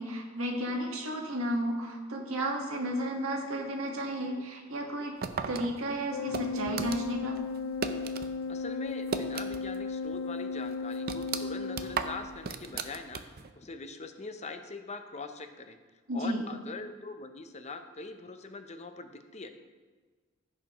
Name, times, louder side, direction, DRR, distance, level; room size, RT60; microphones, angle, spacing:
voice 1, 0.0-5.1 5.5-7.4 16.1-16.4, right 1 dB, 85° right, 1 dB, 1.6 m, -33 dB
sound 1, 5.2-8.3 8.6-9.8 10.1-10.2 10.7-13.5, right 5 dB, 50° right, 0.5 m, -36 dB
Organ, 6.1-12.6, left 4 dB, 75° left, 0.4 m, -35 dB
voice 2, 8.5-13.2 13.6-15.8 16.1-19.5, left 3 dB, 35° left, 7 dB, 0.6 m, -42 dB
15.0 x 6.7 x 3.0 m, 1.4 s
head